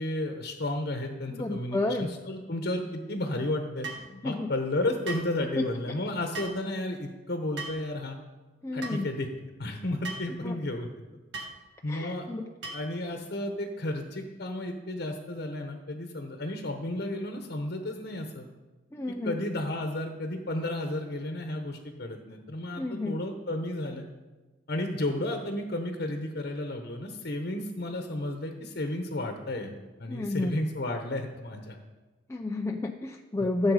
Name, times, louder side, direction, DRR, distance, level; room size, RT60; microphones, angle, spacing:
voice 1, 0.0-3.9 4.2-8.2 8.7-9.3 9.6-10.9 11.8-12.3 12.7-18.5 19.2-24.1 24.7-31.8, left 1 dB, 55° left, 4 dB, 1.0 m, -33 dB
voice 2, 1.4-2.1 4.2-4.5 5.6-5.7 8.6-9.1 10.4-10.5 11.9-12.5 18.9-19.3 22.8-23.2 30.1-30.5 32.3-33.7, left 2 dB, 15° left, 2 dB, 0.5 m, -30 dB
sound 1, 3.8-4.1 5.1-5.3 6.3-6.6 7.6-7.8 8.8-9.0 10.0-10.3 11.3-11.6 12.6-12.9, right 3 dB, 70° right, 1.8 m, -37 dB
15.0 x 7.4 x 4.9 m, 1.2 s
head